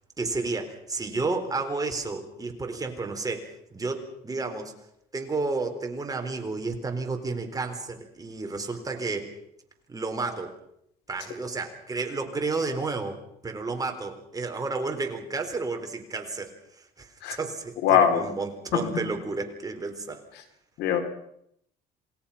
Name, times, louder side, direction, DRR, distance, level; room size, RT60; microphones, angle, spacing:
voice 1, 0.2-4.7 5.1-9.3 9.9-10.6 11.1-20.2, right 3 dB, 20° right, 4 dB, 4.0 m, -31 dB
voice 2, 17.8-18.3 18.7-18.9 20.8-21.0, left 8 dB, 85° left, 7 dB, 3.7 m, -21 dB
28.0 x 19.0 x 5.7 m, 0.73 s
cardioid pair, 110°, 17 cm